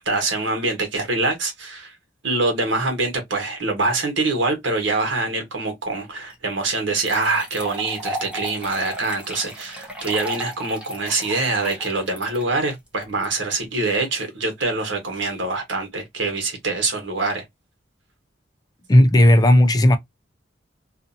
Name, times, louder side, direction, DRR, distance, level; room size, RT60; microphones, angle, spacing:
voice 1, 0.0-1.9 2.2-17.4, right 3 dB, 75° right, 1.3 m, -24 dB
sound 1, 6.3-6.4 6.9-13.2, right 1 dB, 5° right, 0.8 m, -34 dB
voice 2, 18.9-20.0, left 1 dB, 20° left, 0.4 m, -13 dB
2.6 x 2.6 x 2.6 m
head